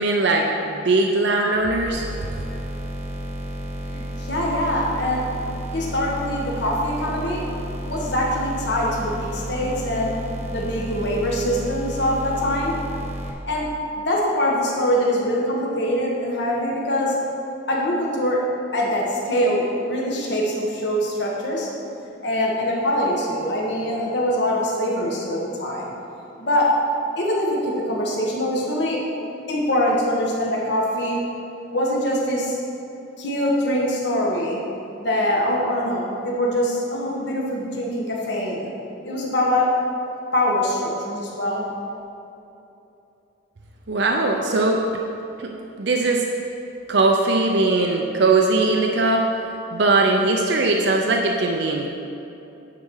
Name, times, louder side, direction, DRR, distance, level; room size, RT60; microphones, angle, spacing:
voice 1, 0.0-2.0 43.9-45.0 45.4-45.5 45.8-46.2 46.9-49.3 49.7-51.9, right 2 dB, 60° right, 1 dB, 0.6 m, -20 dB
sound 1, 1.9-13.3, equal, 35° right, 1.1 m, -32 dB
voice 2, 3.9-5.3 5.7-7.4 7.9-10.1 10.5-12.7 13.5-13.7 14.0-17.2 17.7-18.4 18.7-21.7 22.0-25.9 26.4-26.7 27.2-29.0 29.5-31.2 31.7-32.6 33.2-34.6 35.0-38.7 39.0-39.7 40.3-41.7, left 1 dB, 60° left, -3 dB, 1.5 m, -23 dB
9.7 x 4.2 x 6.4 m, 2.9 s
head